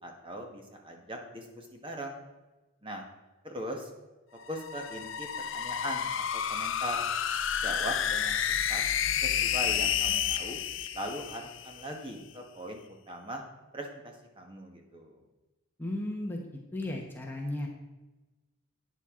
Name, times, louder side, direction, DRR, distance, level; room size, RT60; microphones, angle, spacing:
voice 1, 0.0-2.2 2.8-3.1 3.4-3.9 4.5-5.3 5.5-7.1 7.6-8.8 9.2-10.6 10.9-13.4 13.7-15.2, right 1 dB, 25° right, 2 dB, 1.4 m, -40 dB
sound 1, 4.4-11.9, left 9 dB, 60° left, 0.6 m, -30 dB
voice 2, 15.8-16.4 16.7-17.7, left 1 dB, 10° left, 0 dB, 1.1 m, -34 dB
11.5 x 9.0 x 3.8 m, 1.1 s
head